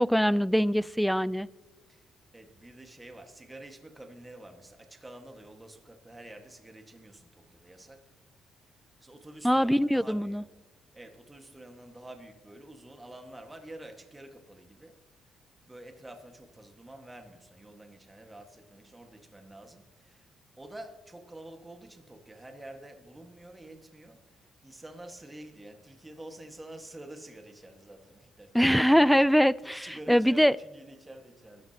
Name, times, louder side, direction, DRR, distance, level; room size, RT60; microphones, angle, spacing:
voice 1, 0.0-1.5 9.4-10.4 28.5-30.5, equal, ahead, 20 dB, 0.3 m, -23 dB
voice 2, 2.3-8.0 9.0-10.5 10.9-15.0 15.6-20.3 20.6-28.9 29.7-31.7, right 1 dB, 15° right, 5 dB, 1.7 m, -48 dB
25.0 x 13.0 x 2.9 m, 1.2 s
cardioid pair, 90°, 0 cm